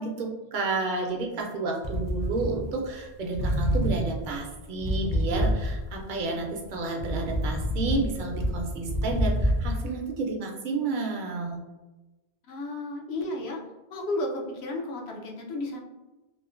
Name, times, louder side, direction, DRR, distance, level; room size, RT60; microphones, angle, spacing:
voice 1, 0.0-11.6, right 3 dB, 60° right, 1 dB, 0.6 m, -31 dB
sound 1, 1.8-3.0 3.3-6.0 6.5-9.7, equal, 30° left, 0.4 m, -27 dB
voice 2, 12.5-13.6 13.9-15.8, left 2 dB, 85° left, 0 dB, 0.9 m, -33 dB
3.0 x 2.1 x 2.4 m, 1.1 s
omnidirectional pair, 1.0 m